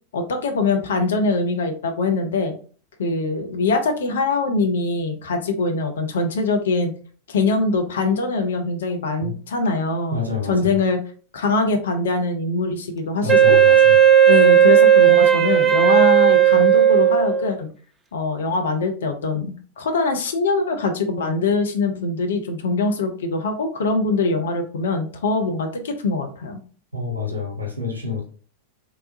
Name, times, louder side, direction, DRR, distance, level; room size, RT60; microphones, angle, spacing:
voice 1, 0.1-2.5 3.0-6.9 7.3-10.2 10.5-11.0 11.3-13.6 14.3-17.7 18.1-26.6, left 3 dB, 65° left, 6 dB, 0.6 m, -23 dB
voice 2, 10.1-10.7 13.2-14.0 26.9-28.2, left 4 dB, 80° right, 1 dB, 1.1 m, -28 dB
Wind instrument woodwind instrument, 13.3-17.5, right 9 dB, 15° right, 0.5 m, -14 dB
3.4 x 3.0 x 2.5 m, 0.41 s
figure-of-eight pair, 90°, 0 cm